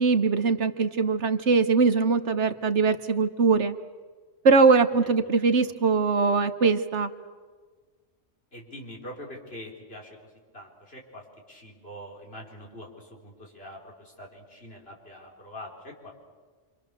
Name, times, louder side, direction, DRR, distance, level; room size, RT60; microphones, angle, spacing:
voice 1, 0.0-3.8 4.4-7.1, right 4 dB, 65° right, 10 dB, 1.4 m, -22 dB
voice 2, 8.5-10.2 10.5-11.2 11.5-16.1, equal, 50° left, -1 dB, 4.9 m, -44 dB
28.5 x 25.5 x 6.9 m, 1.5 s
omnidirectional pair, 1.3 m